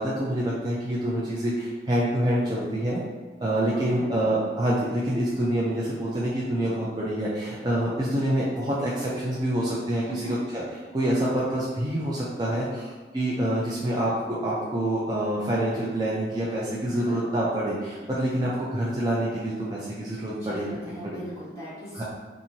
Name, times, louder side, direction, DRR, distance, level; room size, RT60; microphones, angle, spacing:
voice 1, 0.0-3.0 3.4-10.6 10.9-20.7 21.0-21.2 21.9-22.0, right 1 dB, 20° right, -6 dB, 0.3 m, -26 dB
voice 2, 3.7-4.3 10.0-10.3 16.8-17.2 20.3-22.0, equal, 20° left, -11 dB, 1.1 m, -38 dB
2.8 x 2.5 x 2.6 m, 1.4 s
head